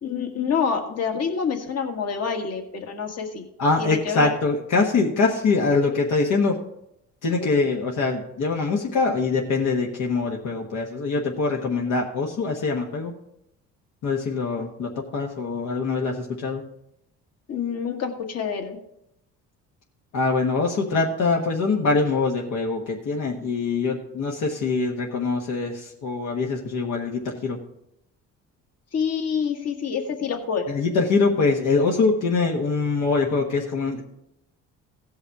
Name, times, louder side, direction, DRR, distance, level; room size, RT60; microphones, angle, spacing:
voice 1, 0.0-3.4 3.8-4.3 14.6-14.7 17.5-18.8 28.9-30.6, left 6 dB, 50° left, 4 dB, 1.7 m, -27 dB
voice 2, 3.6-6.6 7.2-13.1 14.0-16.6 20.1-27.6 30.7-34.0, left 4 dB, 70° left, 0 dB, 1.3 m, -23 dB
16.0 x 5.5 x 4.7 m, 0.81 s
cardioid pair, 95°, 32 cm